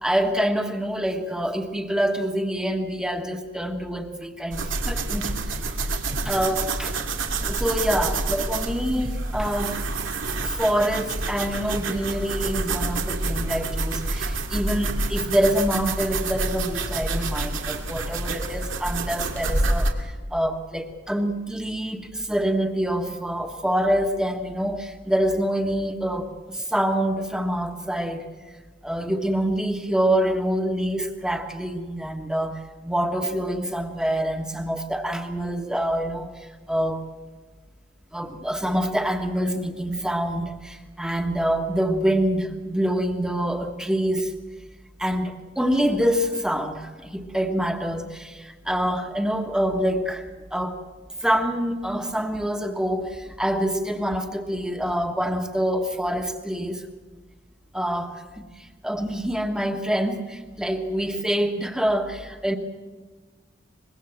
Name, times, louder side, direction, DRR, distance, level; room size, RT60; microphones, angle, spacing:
voice 1, 0.0-5.6 6.2-7.0 7.4-9.8 10.4-28.2 28.8-37.0 38.1-44.3 45.0-50.8 51.2-56.9 57.7-62.6, equal, 5° right, 5 dB, 1.4 m, -26 dB
sound 1, 4.5-19.9, right 2 dB, 90° right, 2.3 m, -28 dB
24.0 x 21.5 x 7.3 m, 1.4 s
head